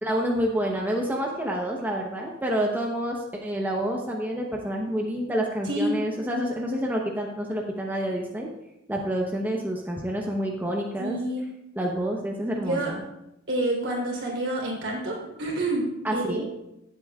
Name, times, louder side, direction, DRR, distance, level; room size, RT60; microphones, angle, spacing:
voice 1, 0.0-8.5 8.9-11.2 11.7-13.0 16.0-16.4, equal, 10° right, -1 dB, 0.9 m, -28 dB
voice 2, 11.0-11.4 12.6-12.9 13.5-16.4, right 1 dB, 60° right, -2 dB, 3.5 m, -28 dB
17.0 x 8.0 x 2.4 m, 0.89 s
head